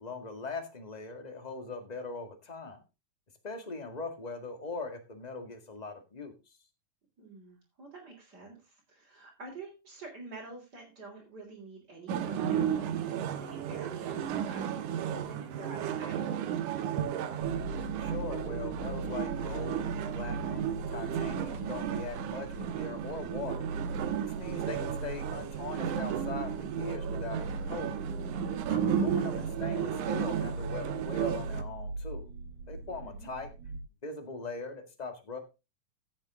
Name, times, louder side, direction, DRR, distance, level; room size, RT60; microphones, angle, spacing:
voice 1, 0.0-2.8 3.4-6.6 18.0-19.9 20.1-23.7 24.2-28.0 28.7-32.3 32.7-33.5 34.0-35.4, left 3 dB, 20° left, 5 dB, 1.4 m, -41 dB
voice 2, 7.2-16.2 33.0-33.3, right 3 dB, 35° right, -4 dB, 3.5 m, -48 dB
sound 1, 12.1-31.6, right 9 dB, 85° right, 2.5 m, -33 dB
sound 2, 17.4-33.8, right 2 dB, 65° right, 3.5 m, -40 dB
15.5 x 7.3 x 3.6 m, 0.28 s
omnidirectional pair, 3.5 m